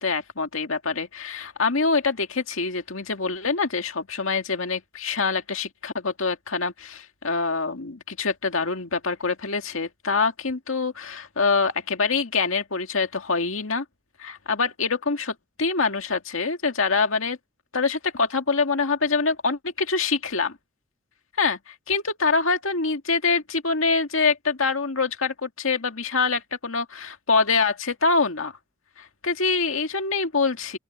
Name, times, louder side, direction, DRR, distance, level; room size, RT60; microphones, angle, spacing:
voice 1, 0.0-13.8 14.2-17.4 17.7-20.6 21.4-28.5 29.0-30.8, left 4 dB, 85° left, 2.0 m, -25 dB
open air
head